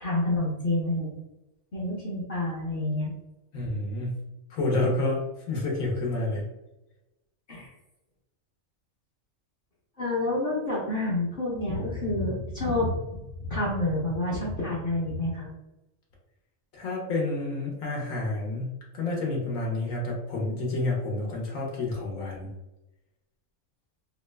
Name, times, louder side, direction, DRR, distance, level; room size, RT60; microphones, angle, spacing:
voice 1, 0.0-1.1 1.7-3.1 7.5-7.7 10.0-12.9 13.4-15.5, left 2 dB, 50° left, -6 dB, 0.8 m, -28 dB
voice 2, 3.5-4.2 4.5-6.4 16.7-18.7 18.9-22.5, left 2 dB, 80° left, -2 dB, 1.3 m, -29 dB
3.1 x 2.2 x 3.2 m, 0.95 s
omnidirectional pair, 1.4 m